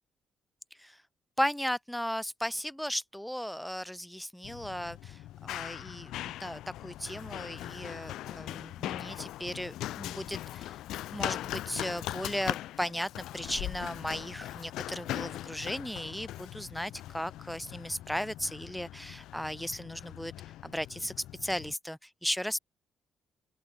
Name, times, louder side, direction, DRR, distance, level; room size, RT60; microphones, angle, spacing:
voice 1, 1.4-10.8 11.1-20.3 20.6-21.1 21.4-22.6, equal, 5° left, 0.4 m, -36 dB
Run, 4.4-21.7, left 14 dB, 80° left, 1.9 m, -40 dB
open air
cardioid pair, 85°, 0 cm